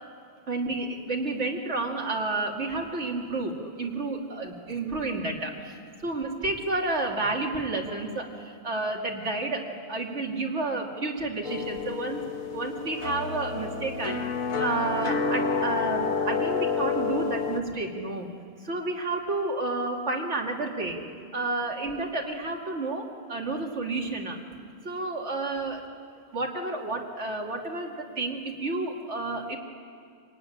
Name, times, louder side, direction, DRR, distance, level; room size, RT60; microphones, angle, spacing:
voice 1, 0.5-12.2 12.5-14.3 14.6-18.3 18.6-21.0 21.3-24.4 24.8-25.9 26.3-29.6, right 2 dB, 55° right, 0 dB, 2.8 m, -31 dB
sound 1, 11.4-17.6, left 5 dB, 90° left, 1.7 m, -29 dB
25.5 x 18.5 x 9.9 m, 2.2 s
omnidirectional pair, 1.4 m